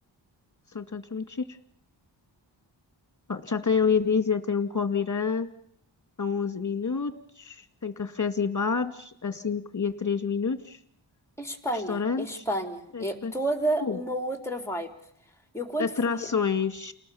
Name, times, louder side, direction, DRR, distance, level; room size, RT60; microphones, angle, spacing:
voice 1, 0.7-1.5 3.3-5.5 6.2-10.8 11.9-12.4 12.9-13.3 13.8-14.0 15.8-16.9, left 5 dB, 40° left, 9 dB, 2.2 m, -28 dB
voice 2, 11.4-14.9 15.5-16.3, right 1 dB, 5° left, 5 dB, 4.1 m, -31 dB
30.0 x 19.5 x 7.2 m, 0.69 s
wide cardioid pair, 65°, 46 cm